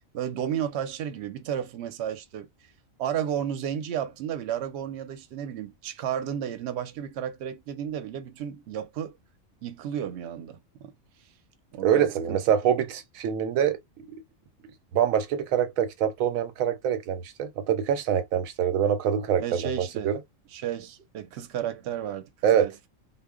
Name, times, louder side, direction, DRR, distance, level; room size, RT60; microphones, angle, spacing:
voice 1, 0.1-2.5 3.0-9.2 9.6-10.9 11.7-12.4 19.4-20.1 20.5-22.7, right 9 dB, 65° right, 0.8 m, -32 dB
voice 2, 11.8-14.1 14.9-20.2 22.4-22.7, right 9 dB, 85° right, 1.0 m, -25 dB
2.1 x 2.1 x 3.5 m
omnidirectional pair, 1.4 m